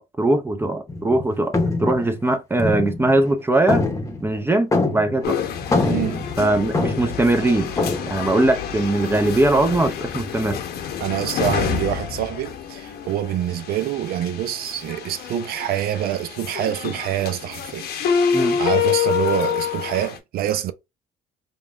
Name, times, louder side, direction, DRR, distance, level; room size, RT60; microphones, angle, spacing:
voice 1, 0.0-1.5 1.8-3.9 4.2-5.4 6.4-7.7 8.1-10.6 18.3-18.6, right 2 dB, 15° right, 0.5 m, -20 dB
sound 1, 0.9-1.2 1.5-3.3 3.7-5.3 5.6-7.3 7.8-8.1, left 3 dB, 20° left, 0.8 m, -24 dB
sound 2, 5.2-20.2, left 8 dB, 70° left, 0.8 m, -27 dB
voice 2, 5.8-6.2 11.0-17.9 18.6-20.7, right 12 dB, 65° right, 0.5 m, -26 dB
5.2 x 2.3 x 2.4 m
cardioid pair, 110°, 17 cm